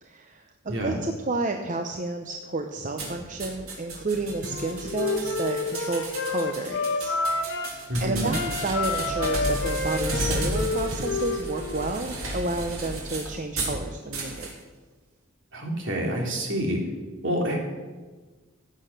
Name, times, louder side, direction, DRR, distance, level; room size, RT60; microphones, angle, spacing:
voice 1, 0.0-7.1 7.5-14.5, right 2 dB, 40° right, 4 dB, 0.8 m, -31 dB
sound 1, 3.0-13.8 14.1-14.5, right 1 dB, 90° right, 3.4 m, -33 dB
Wind instrument woodwind instrument, 4.4-7.8 8.2-11.9, left 3 dB, 60° left, 1.5 m, -29 dB
voice 2, 7.9-8.3 15.5-16.8 17.2-17.6, equal, 60° right, 0 dB, 3.1 m, -27 dB
15.0 x 8.8 x 6.6 m, 1.3 s
head